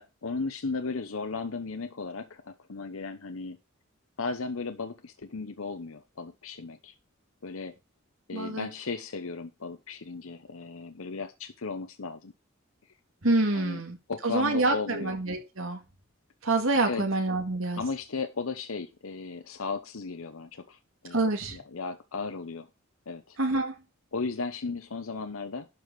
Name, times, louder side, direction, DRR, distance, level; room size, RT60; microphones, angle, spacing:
voice 1, 0.0-3.6 4.2-6.9 7.4-7.7 8.3-12.3 13.5-13.8 14.1-15.1 16.8-17.0 17.8-20.8 21.0-21.3 21.5-22.7 23.1-23.4 24.1-25.7, left 4 dB, 75° left, 0.9 m, -35 dB
voice 2, 8.3-8.7 13.2-14.0 14.2-15.8 16.4-17.8 21.1-21.6 23.4-23.7, right 2 dB, 70° right, 2.1 m, -27 dB
12.0 x 5.0 x 6.1 m
head